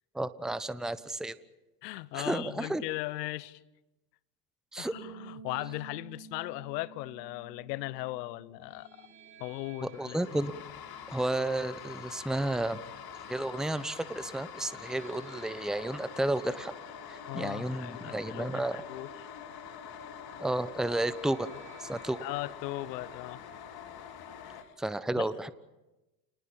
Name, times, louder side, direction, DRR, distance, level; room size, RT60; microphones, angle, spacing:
voice 1, 0.1-1.3 2.1-2.8 4.7-5.0 9.8-10.5 11.1-12.8 13.3-16.7 17.1-18.8 20.4-21.5 21.8-22.2 24.8-25.6, right 1 dB, ahead, 1.1 m, -32 dB
voice 2, 1.8-3.6 4.8-9.1 9.4-10.4 17.3-19.1 22.2-23.4 24.4-24.7 25.2-25.3, left 19 dB, 75° left, 1.1 m, -38 dB
Bass guitar, 4.9-11.2, right 6 dB, 65° right, 2.9 m, -52 dB
sound 1, 8.6-24.7, right 6 dB, 85° right, 7.3 m, -57 dB
sound 2, 9.9-24.6, left 9 dB, 50° left, 2.7 m, -45 dB
29.5 x 20.0 x 7.3 m
hypercardioid pair, 80°, 49 cm